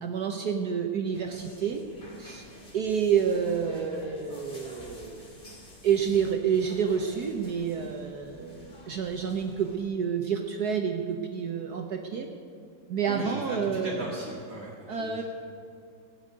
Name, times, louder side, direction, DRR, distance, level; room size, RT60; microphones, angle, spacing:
voice 1, 0.0-1.8 2.2-2.4 2.7-5.5 5.8-12.3 12.9-14.1 14.9-15.2, right 7 dB, 60° right, 4 dB, 1.2 m, -29 dB
sound 1, 1.1-9.8, left 1 dB, 25° left, 2.1 m, -48 dB
voice 2, 13.1-15.2, right 1 dB, 40° right, -5 dB, 2.2 m, -38 dB
17.0 x 6.6 x 9.5 m, 2.4 s
omnidirectional pair, 2.2 m